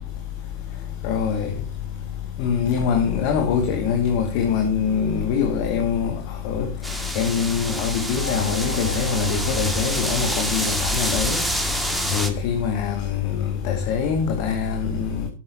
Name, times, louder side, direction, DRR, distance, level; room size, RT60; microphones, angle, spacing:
voice 1, 1.0-1.5 2.4-6.1 6.4-6.7 7.2-11.4 12.1-15.3, left 7 dB, 45° left, 2.3 m, -23 dB
sound 1, 6.8-12.3, right 1 dB, ahead, 2.3 m, -27 dB
sound 2, 8.2-12.0, right 2 dB, 80° left, 0.9 m, -33 dB
13.0 x 12.0 x 2.9 m
figure-of-eight pair, 95°, 0 cm